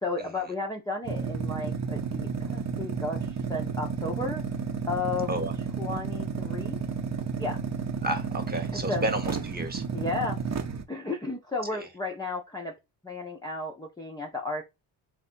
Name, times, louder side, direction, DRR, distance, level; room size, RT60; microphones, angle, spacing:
voice 1, 0.0-4.4 4.9-5.3 5.8-6.8 7.4-7.6 8.7-9.0 9.9-10.4 10.9-12.7 13.0-14.6, left 3 dB, 10° left, 0.7 m, -33 dB
sound 1, 1.0-10.8, right 6 dB, 35° right, 0.8 m, -32 dB
voice 2, 8.0-9.8 11.7-11.9, right 1 dB, 20° right, 1.2 m, -31 dB
4.1 x 2.6 x 4.3 m
cardioid pair, 115°, 47 cm